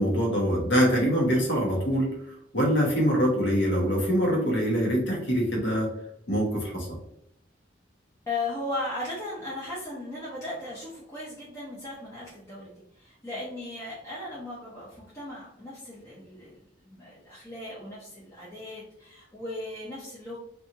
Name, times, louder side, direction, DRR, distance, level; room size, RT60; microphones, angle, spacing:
voice 1, 0.0-2.1 2.5-5.9 6.3-7.0, equal, 75° left, -1 dB, 0.9 m, -24 dB
voice 2, 8.3-20.4, left 2 dB, 15° left, -8 dB, 0.6 m, -37 dB
2.7 x 2.3 x 2.8 m, 0.75 s
head